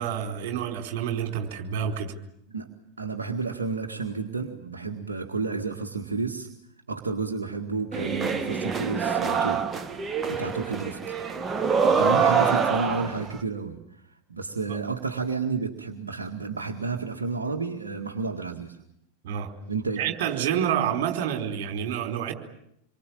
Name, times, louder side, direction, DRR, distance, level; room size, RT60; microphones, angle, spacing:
voice 1, 0.0-2.1 14.7-14.8 19.2-19.5 20.0-22.3, right 9 dB, 50° right, 5 dB, 4.5 m, -28 dB
voice 2, 3.0-6.5 6.9-9.6 10.3-11.1 11.9-14.0 14.3-18.8 19.7-20.0, right 4 dB, 75° right, 1 dB, 2.0 m, -31 dB
sound 1, 7.9-13.4, right 6 dB, 20° right, 1.7 m, -25 dB
27.0 x 23.5 x 8.8 m, 0.76 s
figure-of-eight pair, 90°, 0 cm